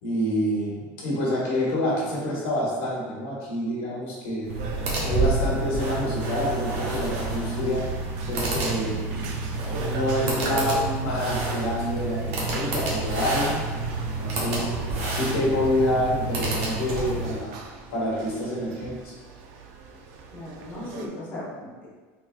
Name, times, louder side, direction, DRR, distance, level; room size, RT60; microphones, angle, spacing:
voice 1, 0.0-4.5 5.0-7.9 8.3-9.0 9.7-14.7 15.1-17.6 17.9-19.2, left 1 dB, 85° left, -4 dB, 1.1 m, -27 dB
sound 1, 4.4-17.4, right 2 dB, 80° right, 1.0 m, -29 dB
sound 2, 4.6-21.1, right 3 dB, 60° right, 0.4 m, -41 dB
sound 3, 5.1-6.6, right 3 dB, 5° left, 0.5 m, -27 dB
voice 2, 20.3-21.9, left 1 dB, 25° left, -8 dB, 1.2 m, -37 dB
3.8 x 3.2 x 2.3 m, 1.4 s
cardioid pair, 170°, 7 cm